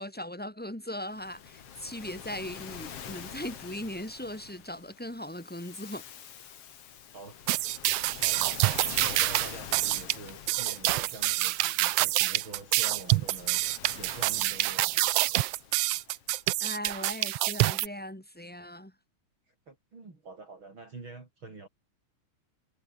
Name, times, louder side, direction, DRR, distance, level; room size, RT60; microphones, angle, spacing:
voice 1, 0.0-6.0 16.6-18.9, left 1 dB, 5° left, 5.7 m, -39 dB
Waves surf, 1.1-16.6, left 8 dB, 55° left, 2.8 m, -46 dB
voice 2, 7.1-7.4 8.2-13.6 13.9-15.1 19.5-21.7, right 3 dB, 40° right, 5.6 m, -46 dB
sound 1, 7.5-17.9, right 17 dB, 85° right, 1.3 m, -27 dB
omnidirectional pair, 3.4 m